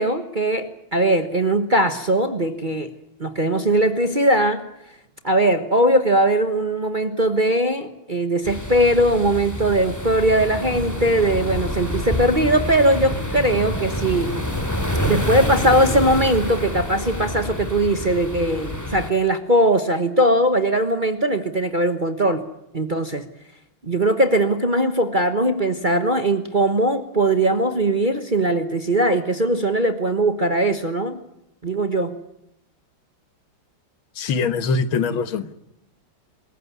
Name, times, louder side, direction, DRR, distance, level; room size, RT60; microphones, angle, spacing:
voice 1, 0.0-2.9 3.2-4.7 5.2-14.3 15.1-22.4 22.7-23.3 23.8-31.2 31.6-32.2, right 1 dB, 30° right, 8 dB, 1.1 m, -20 dB
sound 1, 8.4-19.1, equal, 10° left, 2.6 m, -27 dB
voice 2, 34.2-35.5, left 4 dB, 70° left, 12 dB, 2.0 m, -23 dB
26.5 x 15.0 x 9.6 m, 0.82 s
omnidirectional pair, 2.3 m